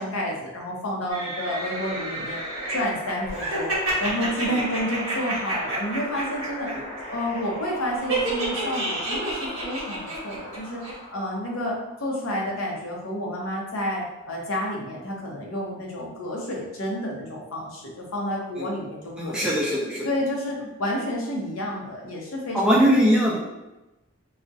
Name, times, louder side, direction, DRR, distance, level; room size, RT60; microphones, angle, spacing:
voice 1, 0.0-2.4 2.7-3.7 4.0-6.7 7.1-10.8 11.1-19.5 20.0-23.1, equal, 75° left, -2 dB, 0.6 m, -30 dB
sound 1, 1.1-2.7 3.3-6.7 7.0-7.4 8.1-10.6 10.8-10.9, right 2 dB, 75° right, 0.8 m, -30 dB
sound 2, 1.3-12.7, equal, 45° left, 0.8 m, -39 dB
voice 2, 19.2-20.1 22.5-23.4, equal, 5° right, -5 dB, 0.4 m, -21 dB
2.3 x 2.0 x 2.6 m, 1.0 s
head